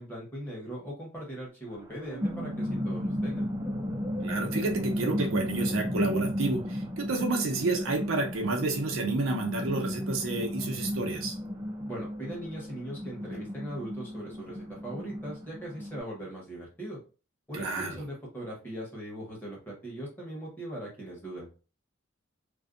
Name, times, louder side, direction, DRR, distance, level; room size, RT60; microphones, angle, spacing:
voice 1, 0.0-3.5 11.9-17.0 17.5-21.5, right 1 dB, 10° left, -5 dB, 1.0 m, -40 dB
sound 1, 1.7-16.0, equal, 15° right, 0.4 m, -34 dB
voice 2, 4.2-11.3 17.5-18.0, right 2 dB, 80° right, 2 dB, 0.6 m, -30 dB
2.5 x 2.1 x 2.4 m, 0.34 s
head